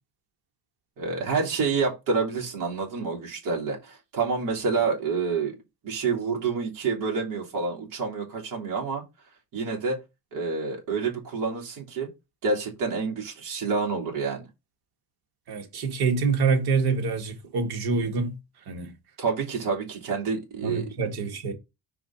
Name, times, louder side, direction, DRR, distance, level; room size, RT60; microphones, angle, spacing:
voice 1, 1.0-5.6 5.8-9.0 9.5-10.0 10.3-12.1 12.4-14.4 19.2-20.9, right 4 dB, 55° right, 2.9 m, -28 dB
voice 2, 15.5-18.4 18.7-18.9 20.6-21.5, right 4 dB, 70° right, 1.8 m, -26 dB
4.9 x 3.7 x 5.7 m
cardioid pair, 165°, 39 cm